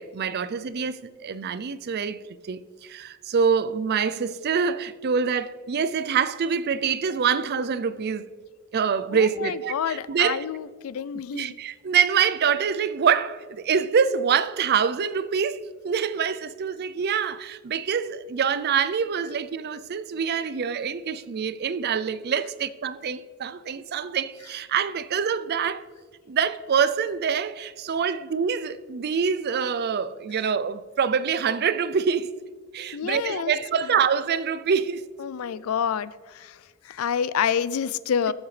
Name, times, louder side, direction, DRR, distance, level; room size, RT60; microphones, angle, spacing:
voice 1, 0.0-2.2 2.5-8.3 8.7-10.4 11.3-25.8 26.3-32.3 32.7-35.0, right 6 dB, 50° right, 0.4 m, -25 dB
voice 2, 9.1-11.6 32.9-33.5 33.8-33.9 35.2-36.6 36.8-38.3, left 8 dB, 80° left, 0.4 m, -28 dB
18.5 x 7.2 x 3.3 m
head